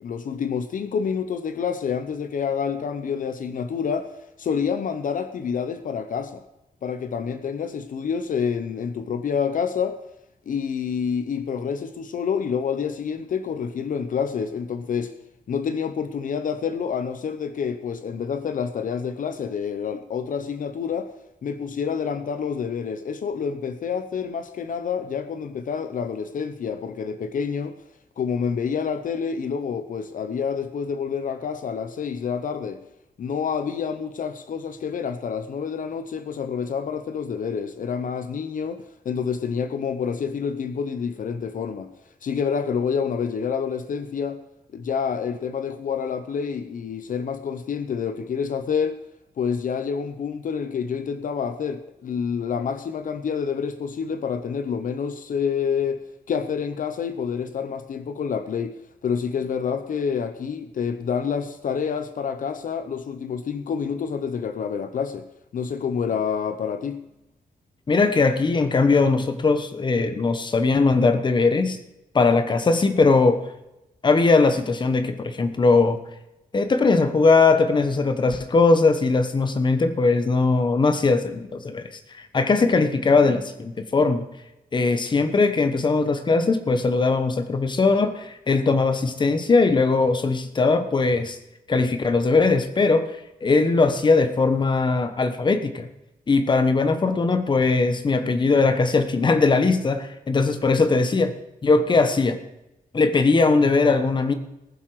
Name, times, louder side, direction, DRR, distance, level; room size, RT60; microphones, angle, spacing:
voice 1, 0.0-4.1 4.4-6.4 6.8-10.0 10.5-15.1 15.5-21.1 21.4-27.8 28.2-32.8 33.2-41.9 42.2-44.4 44.7-49.0 49.4-58.7 59.0-65.3 65.5-67.0, left 6 dB, 65° left, 10 dB, 0.8 m, -28 dB
voice 2, 67.9-71.8 72.1-73.4 74.0-76.0 76.5-81.8 82.1-84.2 84.7-91.4 91.7-93.1 93.4-95.9 96.3-101.3 101.6-102.4 102.9-104.3, left 3 dB, 30° left, 9 dB, 1.1 m, -20 dB
20.0 x 7.5 x 4.7 m, 0.91 s
wide cardioid pair, 175°, 15 cm